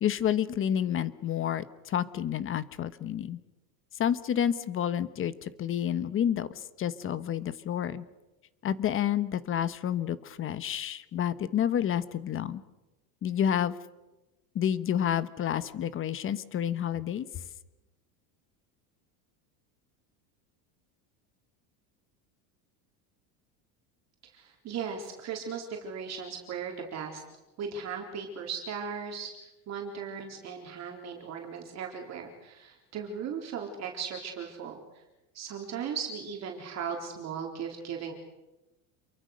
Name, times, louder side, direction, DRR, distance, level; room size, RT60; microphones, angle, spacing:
voice 1, 0.0-3.4 3.9-8.0 8.6-12.6 13.2-13.8 14.5-17.3, left 9 dB, 30° left, 15 dB, 1.1 m, -29 dB
voice 2, 24.2-27.2 27.6-35.0 35.3-38.1, right 6 dB, 35° right, 1 dB, 4.0 m, -37 dB
28.0 x 23.5 x 6.6 m, 1.0 s
cardioid pair, 155°, 45 cm